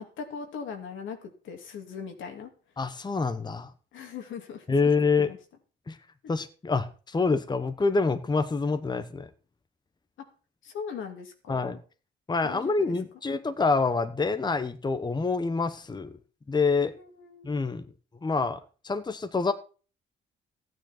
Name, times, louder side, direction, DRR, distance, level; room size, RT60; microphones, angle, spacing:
voice 1, 0.0-2.5 3.9-4.9 5.2-5.4 10.6-11.8 12.4-13.0 16.8-17.6, left 6 dB, 75° left, 2.5 m, -40 dB
voice 2, 2.8-3.7 4.7-5.3 5.9-6.0 6.3-9.3 11.5-11.8 12.3-16.1 16.5-16.9 17.4-17.8 18.2-19.5, left 4 dB, 20° left, 1.0 m, -26 dB
14.0 x 9.3 x 4.4 m
cardioid pair, 90°, 20 cm